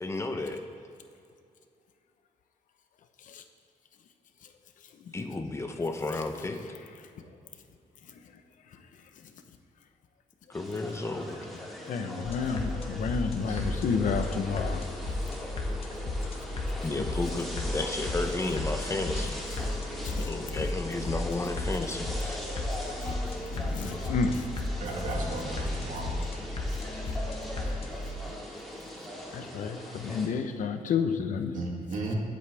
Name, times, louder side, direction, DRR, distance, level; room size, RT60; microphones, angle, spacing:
voice 1, 0.0-0.6 5.1-6.6 10.5-11.4 16.8-19.7 20.3-22.4, left 2 dB, 20° left, 5 dB, 0.8 m, -33 dB
sound 1, 10.5-30.3, equal, ahead, 2.0 m, -41 dB
voice 2, 11.9-14.9 17.0-17.1 20.0-20.3 23.0-23.1 23.5-24.4 29.3-31.6, left 5 dB, 70° left, 7 dB, 1.0 m, -30 dB
sound 2, 12.2-27.9, left 2 dB, 45° left, 1.4 m, -34 dB
voice 3, 13.4-13.8 24.8-26.1 31.5-32.2, right 2 dB, 70° right, -1 dB, 2.4 m, -35 dB
22.0 x 8.1 x 3.5 m, 2.5 s
wide cardioid pair, 160°, 14 cm